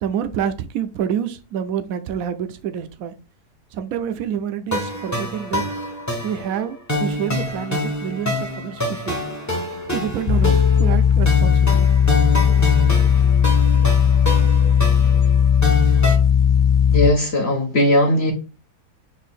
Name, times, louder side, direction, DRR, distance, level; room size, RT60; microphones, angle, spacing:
voice 1, 0.0-3.1 3.7-5.7 6.2-9.2 9.9-11.9, right 8 dB, 70° right, 1.0 m, -27 dB
sound 1, 4.7-16.2, left 1 dB, 15° left, 0.7 m, -26 dB
sound 2, 10.3-17.1, left 8 dB, 65° left, 0.4 m, -16 dB
voice 2, 16.9-18.3, left 1 dB, 50° left, 1.0 m, -18 dB
4.6 x 2.6 x 4.1 m
omnidirectional pair, 1.7 m